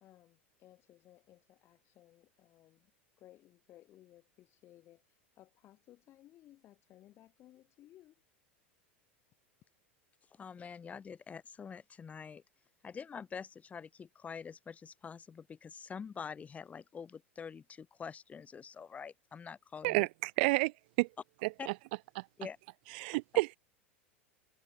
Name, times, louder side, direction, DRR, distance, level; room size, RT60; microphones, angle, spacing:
voice 1, 0.0-2.9 3.2-8.2, left 14 dB, 40° left, 1.8 m, -60 dB
voice 2, 10.3-12.4 12.8-20.1 21.6-21.7 22.4-22.6, left 6 dB, 20° left, 1.1 m, -46 dB
voice 3, 19.8-21.1 21.4-21.7 22.2-22.3 22.9-23.6, right 24 dB, 55° right, 0.4 m, -30 dB
figure-of-eight pair, 85°, 7 cm